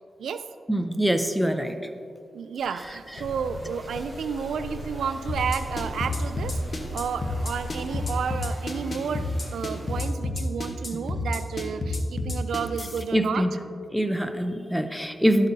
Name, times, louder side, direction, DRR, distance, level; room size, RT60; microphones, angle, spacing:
voice 1, 0.7-1.8 13.1-13.5 13.9-15.5, equal, ahead, 7 dB, 0.6 m, -24 dB
voice 2, 2.3-6.6 6.9-13.5, right 6 dB, 85° right, 11 dB, 0.3 m, -31 dB
sound 1, 2.6-10.0, right 1 dB, 20° right, 1.8 m, -45 dB
sound 2, 3.2-8.3, left 1 dB, 70° left, 0.7 m, -40 dB
sound 3, 5.3-13.0, left 2 dB, 40° left, 1.0 m, -30 dB
12.0 x 8.1 x 2.7 m, 2.4 s
cardioid pair, 80°, 0 cm